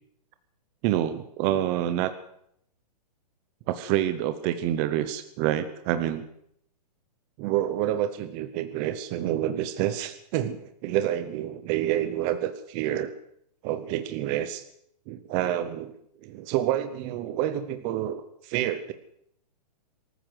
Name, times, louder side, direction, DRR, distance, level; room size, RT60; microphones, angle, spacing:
voice 1, 0.8-2.1 3.7-6.2 7.4-13.1 13.6-14.6 15.1-15.9 16.2-18.9, right 12 dB, 20° right, 11 dB, 0.8 m, -28 dB
23.5 x 14.0 x 7.8 m, 0.73 s
hypercardioid pair, 175°, 21 cm